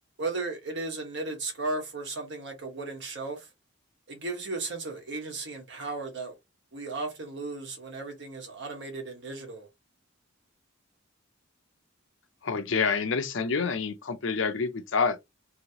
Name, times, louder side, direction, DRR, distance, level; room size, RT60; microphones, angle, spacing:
voice 1, 0.2-3.5 4.1-6.3 6.7-9.7, right 3 dB, 55° right, 1.3 m, -35 dB
voice 2, 12.4-15.2, left 5 dB, 60° left, 0.6 m, -27 dB
3.0 x 2.8 x 2.8 m
head